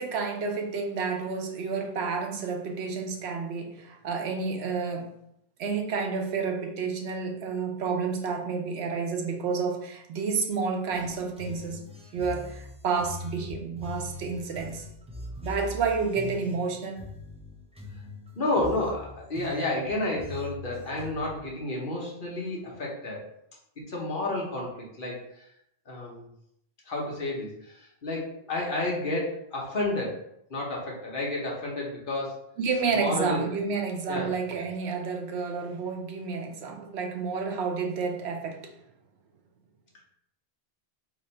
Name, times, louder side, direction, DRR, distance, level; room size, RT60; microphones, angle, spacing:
voice 1, 0.0-5.1 5.6-14.9 15.4-17.0 32.6-38.7, right 5 dB, 85° right, 4 dB, 0.9 m, -30 dB
sound 1, 10.9-21.4, left 1 dB, 10° right, 0.4 m, -42 dB
voice 2, 18.4-23.2 23.8-25.5 25.9-26.3 26.9-30.2 30.5-32.4 32.9-33.4 34.1-34.3, left 2 dB, 55° left, -3 dB, 1.1 m, -31 dB
3.0 x 2.6 x 4.2 m, 0.75 s
omnidirectional pair, 1.1 m